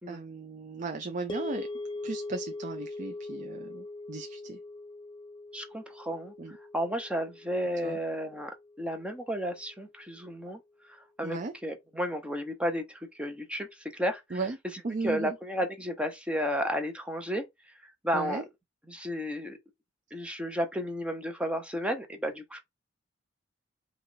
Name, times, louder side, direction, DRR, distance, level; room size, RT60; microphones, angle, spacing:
voice 1, 0.1-1.7 2.0-4.6 6.4-6.6 7.8-8.0 11.2-11.5 14.3-14.6 14.8-15.4 18.1-18.4, right 3 dB, 40° right, 0.5 m, -36 dB
sound 1, 1.3-9.6, left 2 dB, 25° left, 0.6 m, -41 dB
voice 2, 5.5-6.3 6.7-8.5 8.8-10.6 11.2-11.4 11.6-14.4 15.0-17.4 17.8-18.4 18.9-19.6 20.1-22.6, equal, 5° right, 0.8 m, -32 dB
5.4 x 2.4 x 3.9 m
head